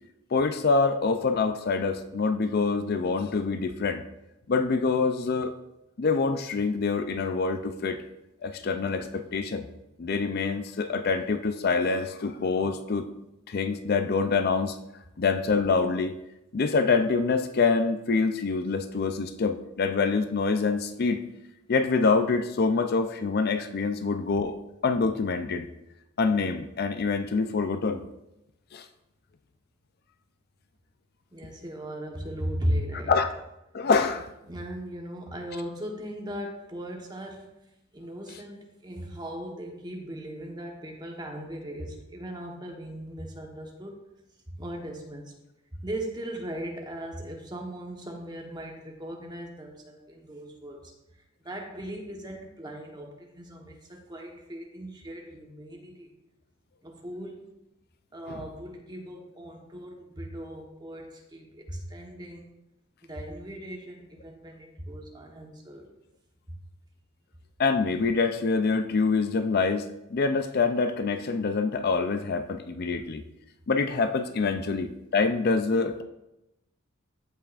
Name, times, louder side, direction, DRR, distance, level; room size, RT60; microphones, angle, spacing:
voice 1, 0.3-4.0 4.5-5.5 6.0-8.0 8.4-9.7 10.0-13.1 13.5-14.8 15.2-16.2 16.5-21.2 21.7-24.5 24.8-25.7 26.2-28.0 28.7-28.9 33.1-33.3 33.7-34.3 58.3-58.4 67.6-69.9 70.1-73.2 73.7-76.0, left 4 dB, 50° left, 8 dB, 0.4 m, -25 dB
voice 2, 31.3-33.2 34.5-37.5 37.9-44.0 44.6-45.3 45.8-50.9 51.4-56.1 56.8-57.4 58.1-62.4 63.0-65.9, equal, 20° right, 1 dB, 1.1 m, -37 dB
14.5 x 5.6 x 2.5 m, 0.89 s
head